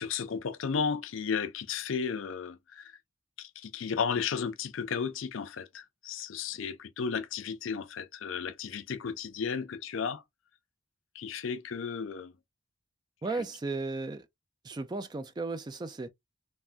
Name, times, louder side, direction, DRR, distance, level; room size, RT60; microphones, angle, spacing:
voice 1, 0.0-2.9 3.4-10.2 11.1-12.3, left 6 dB, 70° left, 0.5 m, -34 dB
voice 2, 13.2-14.3 14.6-16.1, right 3 dB, 20° right, 0.3 m, -35 dB
3.3 x 2.1 x 2.4 m
head